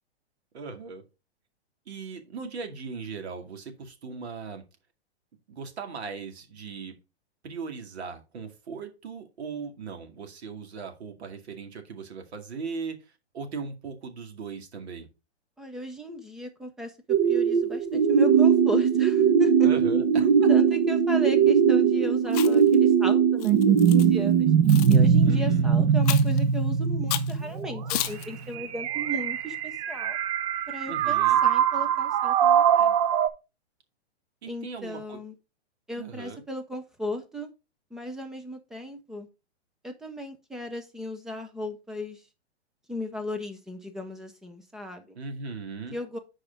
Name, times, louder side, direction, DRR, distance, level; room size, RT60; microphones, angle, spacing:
voice 1, 0.5-1.0 1.9-4.6 5.5-6.9 7.4-13.0 13.3-15.1 19.6-20.5 25.2-26.0 30.9-31.4 34.4-35.2 36.0-36.4 45.2-46.0, right 5 dB, 70° right, 2.3 m, -38 dB
voice 2, 15.6-19.7 20.5-24.5 24.9-30.2 30.7-33.0 34.5-35.4 35.9-37.5 37.9-39.3 39.8-42.2 42.9-45.2 45.9-46.2, equal, ahead, 0.4 m, -35 dB
sound 1, 17.1-33.3, right 7 dB, 35° right, 0.8 m, -21 dB
Chewing mastication, 22.3-22.7 23.4-24.1 24.7-25.0 26.1-26.4 27.1-27.3 27.9-28.3, left 13 dB, 35° left, 0.7 m, -31 dB
6.9 x 4.8 x 5.0 m
hypercardioid pair, 150°, 33 cm